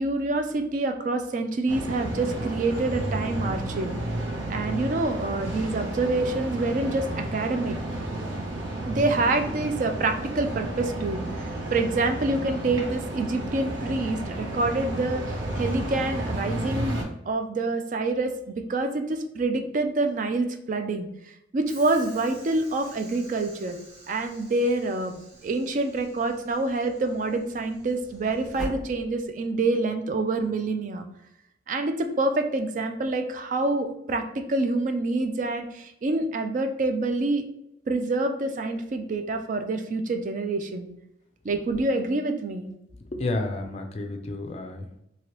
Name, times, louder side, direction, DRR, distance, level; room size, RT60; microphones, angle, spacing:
voice 1, 0.0-3.9 4.5-7.8 8.9-17.0 17.3-21.1 21.5-23.8 24.1-31.1 31.7-37.4 37.9-40.9 41.4-42.7, right 2 dB, 45° right, 6 dB, 0.3 m, -27 dB
sound 1, 1.7-17.0, right 1 dB, 85° right, 0.8 m, -32 dB
Train / Sliding door, 21.7-29.6, right 1 dB, 60° right, 1.0 m, -44 dB
voice 2, 43.1-45.0, left 2 dB, 35° left, 5 dB, 0.4 m, -31 dB
2.9 x 2.8 x 3.0 m, 0.81 s
head